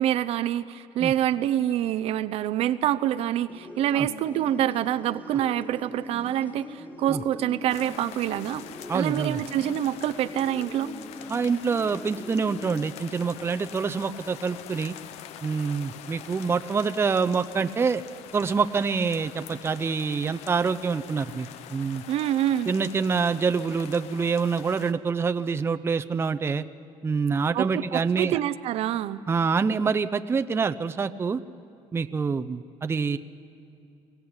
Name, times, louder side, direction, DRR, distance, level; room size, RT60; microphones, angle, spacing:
voice 1, 0.0-8.6 8.9-10.9 22.1-22.7 27.5-29.2, right 11 dB, 65° right, 13 dB, 0.7 m, -26 dB
sound 1, 3.5-12.8, equal, 15° left, 2.3 m, -42 dB
sound 2, 7.7-24.9, left 10 dB, 80° left, 0.9 m, -44 dB
voice 2, 8.9-9.4 11.3-15.0 15.4-18.0 18.3-22.0 22.7-26.6 27.0-28.4 29.3-31.4 31.9-33.2, right 5 dB, 20° right, 9 dB, 0.6 m, -26 dB
23.0 x 16.5 x 9.7 m, 2.6 s
cardioid pair, 115°, 11 cm